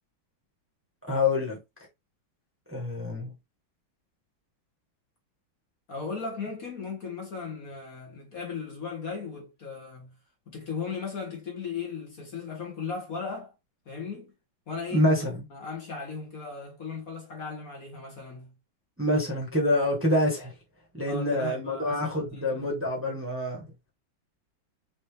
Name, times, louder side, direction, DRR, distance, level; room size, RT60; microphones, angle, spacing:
voice 1, 1.1-1.6 2.7-3.3 14.9-15.4 19.0-20.5 20.9-23.6, left 1 dB, 5° right, 1.3 m, -26 dB
voice 2, 5.9-10.1 10.5-13.5 13.8-14.3 14.7-15.1 15.5-18.5 21.0-22.7, left 5 dB, 50° left, 1.5 m, -37 dB
5.5 x 2.9 x 3.3 m
omnidirectional pair, 2.2 m